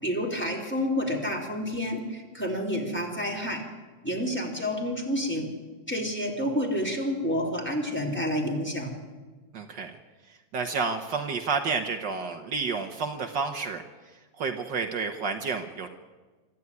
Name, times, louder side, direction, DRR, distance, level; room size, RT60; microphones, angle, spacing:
voice 1, 0.0-3.6 4.0-5.5 5.9-8.9, equal, 5° left, -1 dB, 3.8 m, -29 dB
voice 2, 9.5-10.0 10.5-13.8 14.4-15.9, right 4 dB, 65° right, 5 dB, 1.8 m, -30 dB
25.0 x 14.0 x 9.6 m, 1.3 s
omnidirectional pair, 2.2 m